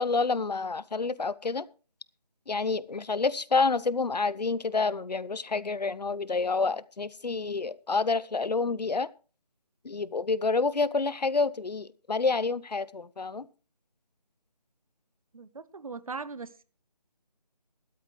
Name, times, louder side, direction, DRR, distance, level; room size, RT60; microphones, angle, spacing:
voice 1, 0.0-1.7 2.5-9.1 9.8-13.5, left 4 dB, 80° left, 0.8 m, -28 dB
voice 2, 15.3-16.6, right 4 dB, 55° right, 0.9 m, -39 dB
14.5 x 12.5 x 3.1 m
figure-of-eight pair, 165°, 21 cm